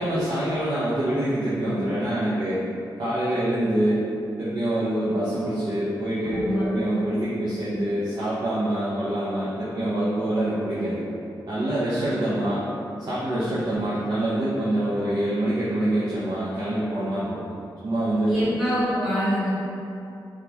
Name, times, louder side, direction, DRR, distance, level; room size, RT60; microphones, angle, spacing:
voice 1, 0.0-2.6 3.0-4.0 4.4-11.0 11.5-12.6 13.0-17.5 17.8-18.4, right 1 dB, 55° right, -11 dB, 0.6 m, -25 dB
voice 2, 6.3-6.7 18.3-19.5, equal, 5° right, -10 dB, 1.0 m, -25 dB
3.5 x 2.3 x 2.9 m, 2.7 s
wide cardioid pair, 130°, 8 cm